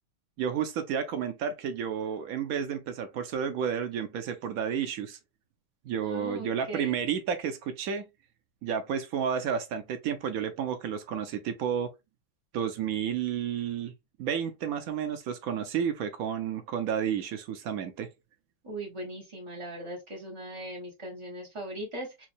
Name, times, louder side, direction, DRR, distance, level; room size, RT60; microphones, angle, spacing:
voice 1, 0.4-5.2 5.8-8.0 8.6-11.9 12.5-13.9 14.2-18.1, right 8 dB, 75° right, 0.8 m, -31 dB
voice 2, 6.0-7.0 18.6-22.3, right 1 dB, 50° right, 0.3 m, -39 dB
3.6 x 3.0 x 2.5 m
omnidirectional pair, 2.0 m